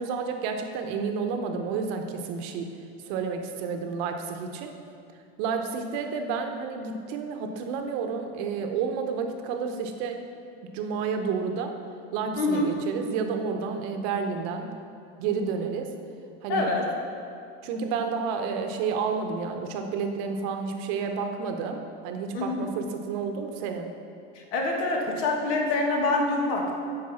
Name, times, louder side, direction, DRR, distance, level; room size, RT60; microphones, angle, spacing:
voice 1, 0.0-2.7 3.1-4.7 5.4-10.2 10.6-11.7 12.1-14.7 15.2-15.9 16.4-16.7 17.6-23.9, right 5 dB, 60° right, 5 dB, 0.9 m, -30 dB
voice 2, 12.4-12.7 16.5-16.8 22.3-22.6 24.3-26.8, left 2 dB, 65° left, 0 dB, 1.6 m, -26 dB
7.9 x 5.1 x 5.6 m, 2.5 s
supercardioid pair, 130°, 30 cm